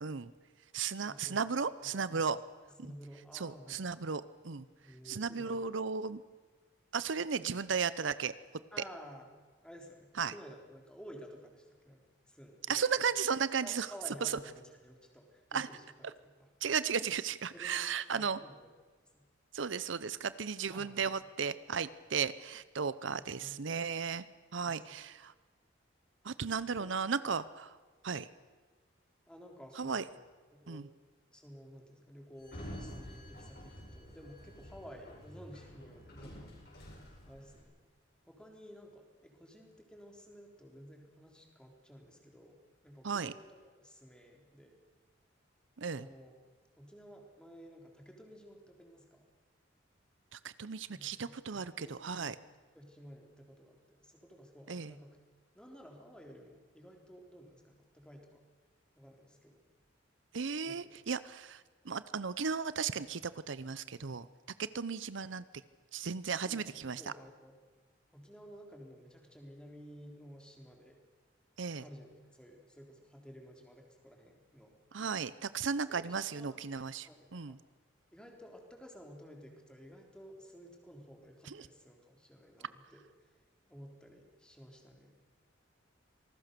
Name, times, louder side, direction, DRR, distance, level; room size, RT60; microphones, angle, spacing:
voice 1, 0.0-0.3 0.7-2.4 3.3-4.6 5.0-6.2 6.9-8.3 10.2-10.3 12.7-13.9 14.2-14.4 15.5-15.7 16.6-18.4 19.5-24.2 24.5-25.3 26.2-27.8 28.0-28.3 29.8-30.0 30.7-30.9 43.0-43.3 45.8-46.1 50.3-52.4 54.7-54.9 60.3-64.3 64.6-65.4 65.9-67.0 71.6-71.8 74.9-77.6 81.5-81.7, right 6 dB, 75° right, 16 dB, 0.7 m, -35 dB
voice 2, 1.0-1.4 1.8-2.3 2.8-3.9 4.8-5.7 7.4-7.6 8.7-9.3 9.6-12.8 13.6-16.5 17.5-18.7 19.1-19.2 20.7-21.1 23.1-23.7 24.6-25.0 26.8-26.9 29.3-30.2 30.5-30.9 31.3-36.5 37.3-37.7 38.3-44.8 45.9-46.3 46.8-49.2 50.9-52.3 52.7-55.2 55.5-58.4 59.0-59.6 60.6-60.9 66.4-67.6 68.1-71.0 71.8-74.8 75.9-76.6 77.0-77.6 78.1-83.3 83.7-85.2, equal, 5° left, 2 dB, 3.7 m, -53 dB
Sliding door, 32.4-37.6, equal, 55° left, 7.8 m, -49 dB
26.5 x 19.5 x 6.8 m, 1.4 s
head